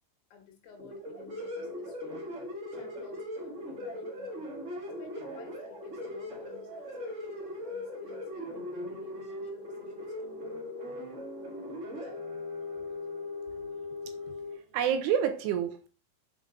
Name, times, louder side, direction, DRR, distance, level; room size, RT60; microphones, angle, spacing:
voice 1, 0.3-2.2 2.7-4.6 5.0-10.5, left 6 dB, 80° left, 3 dB, 4.2 m, -55 dB
sound 1, 0.8-14.5, left 1 dB, 40° right, 1.0 m, -39 dB
voice 2, 14.7-15.9, right 8 dB, 75° right, 8 dB, 2.7 m, -29 dB
7.5 x 5.5 x 5.1 m, 0.35 s
omnidirectional pair, 5.2 m